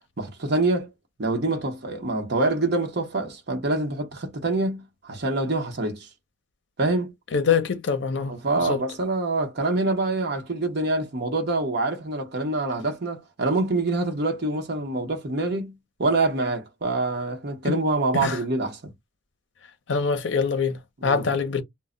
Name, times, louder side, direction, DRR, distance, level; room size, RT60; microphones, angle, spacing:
voice 1, 0.2-0.9 1.2-6.1 6.8-7.1 8.3-18.9 21.0-21.3, right 2 dB, 60° right, 0.8 m, -26 dB
voice 2, 7.3-8.3 8.6-8.8 17.6-17.8 18.1-18.4 19.9-21.6, left 5 dB, 70° left, 0.6 m, -24 dB
2.1 x 2.0 x 3.6 m
head